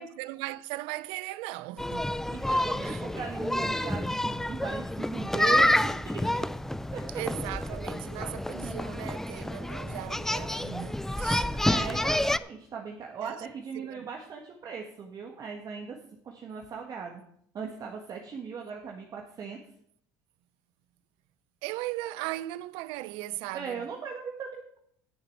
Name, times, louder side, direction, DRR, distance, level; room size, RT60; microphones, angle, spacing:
voice 1, 0.0-2.5 2.8-3.2 7.1-11.5 13.2-13.4 13.7-14.1 21.6-23.9, right 17 dB, 75° right, 0.5 m, -38 dB
sound 1, 1.8-12.4, left 1 dB, 5° left, 0.4 m, -29 dB
voice 2, 2.3-6.5 6.9-7.0 11.6-16.0 16.2-17.2 17.5-19.6 23.5-24.8, right 6 dB, 45° right, 1.6 m, -38 dB
9.7 x 6.8 x 7.2 m
supercardioid pair, 95°, 9 cm